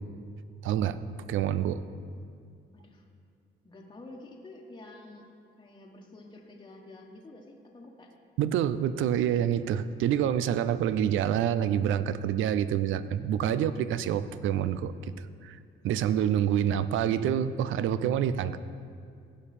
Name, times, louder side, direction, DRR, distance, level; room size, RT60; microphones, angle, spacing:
voice 1, 0.6-1.0 1.3-1.8 8.4-15.1 15.4-15.6 15.8-18.6, right 10 dB, 80° right, 14 dB, 0.5 m, -27 dB
voice 2, 2.7-3.1 3.6-5.3 5.6-8.1, left 2 dB, 25° left, -1 dB, 1.2 m, -49 dB
16.0 x 5.4 x 4.2 m, 2.4 s
cardioid pair, 90°, 20 cm